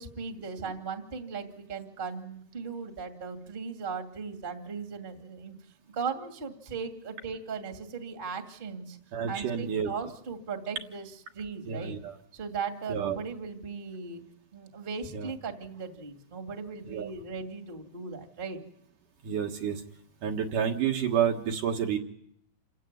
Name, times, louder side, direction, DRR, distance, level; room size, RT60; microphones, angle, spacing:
voice 1, 0.0-5.5 5.9-9.0 9.3-12.0 12.3-14.2 14.5-18.6, right 5 dB, 20° right, 4 dB, 1.7 m, -38 dB
voice 2, 9.1-9.9 11.7-12.2 12.9-13.2 15.1-15.3 16.9-17.1 19.2-19.8 20.2-22.0, right 8 dB, 60° right, 2 dB, 2.9 m, -29 dB
28.5 x 16.0 x 9.5 m, 0.71 s
omnidirectional pair, 4.5 m